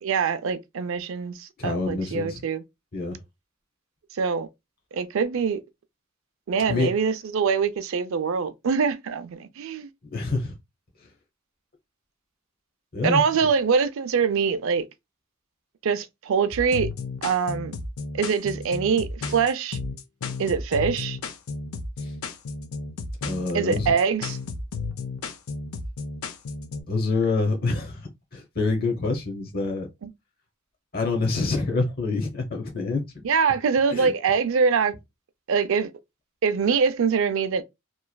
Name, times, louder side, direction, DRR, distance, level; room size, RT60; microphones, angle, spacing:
voice 1, 0.0-2.6 4.1-4.5 4.9-5.6 6.5-9.9 13.0-14.8 15.8-16.9 17.2-17.8 18.1-19.8 20.4-21.2 23.5-24.4 30.0-30.1 33.2-34.9 35.5-35.9 36.4-37.6, right 6 dB, 60° right, 0.4 m, -24 dB
voice 2, 1.6-2.4 2.9-3.2 6.7-6.9 10.1-10.6 12.9-13.2 22.0-22.1 23.2-23.9 26.9-29.9 30.9-33.0 33.9-34.1, left 3 dB, 45° left, 0.8 m, -26 dB
sound 1, 16.5-26.8, left 3 dB, 75° left, 0.4 m, -33 dB
3.1 x 2.3 x 2.2 m
head